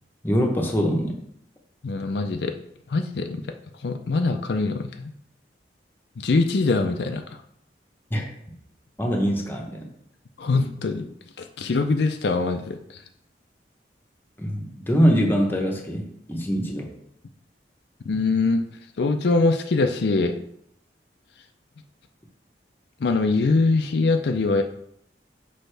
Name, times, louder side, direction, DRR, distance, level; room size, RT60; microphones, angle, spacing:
voice 1, 0.2-1.2 8.1-8.2 9.0-9.9 14.4-16.9, equal, 10° left, 1 dB, 0.9 m, -23 dB
voice 2, 1.8-2.5 2.9-3.4 3.8-5.1 6.2-7.2 10.4-11.1 11.4-12.8 18.0-18.6 19.0-20.4 23.0-24.6, left 3 dB, 65° left, 6 dB, 0.5 m, -23 dB
6.3 x 5.3 x 3.3 m, 0.72 s
head